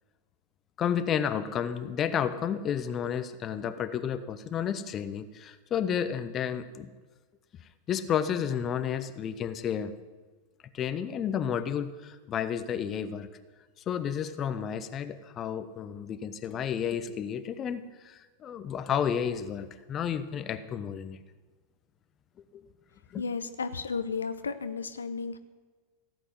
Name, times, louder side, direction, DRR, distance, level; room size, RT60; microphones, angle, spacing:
voice 1, 0.8-6.9 7.9-9.9 10.7-13.3 13.9-21.2 22.5-22.6 23.1-23.2, left 8 dB, 30° left, 12 dB, 0.9 m, -31 dB
voice 2, 23.2-25.4, left 5 dB, 70° left, 10 dB, 0.8 m, -33 dB
16.5 x 8.4 x 9.4 m, 1.4 s
figure-of-eight pair, 90°, 0 cm